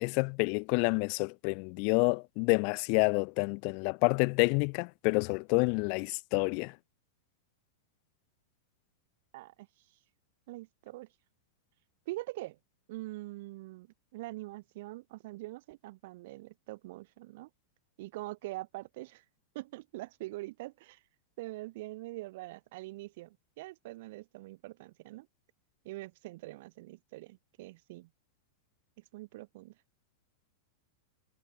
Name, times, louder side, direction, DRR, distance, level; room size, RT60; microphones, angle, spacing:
voice 1, 0.0-6.7, left 40 dB or more, 50° left, 0.3 m, -28 dB
voice 2, 9.3-9.7 10.5-11.1 12.1-12.6 12.9-17.5 18.0-19.2 19.5-21.0 21.4-25.3 25.8-28.1 29.1-29.7, right 19 dB, 60° right, 0.4 m, -43 dB
hypercardioid pair, 105°, 0 cm